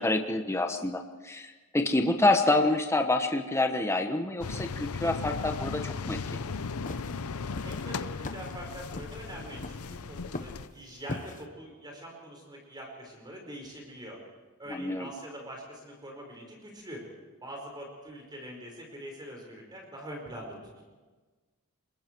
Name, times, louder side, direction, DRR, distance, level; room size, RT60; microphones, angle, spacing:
voice 1, 0.0-6.2 14.7-15.1, left 2 dB, 10° left, 5 dB, 1.2 m, -27 dB
sound 1, 4.4-10.7, left 4 dB, 75° left, 0.7 m, -36 dB
sound 2, 6.5-11.4, left 2 dB, 35° left, 1.1 m, -41 dB
voice 2, 7.6-14.2 14.6-17.0 17.4-20.8, equal, 20° right, 0 dB, 5.0 m, -44 dB
27.0 x 22.0 x 4.7 m, 1.3 s
head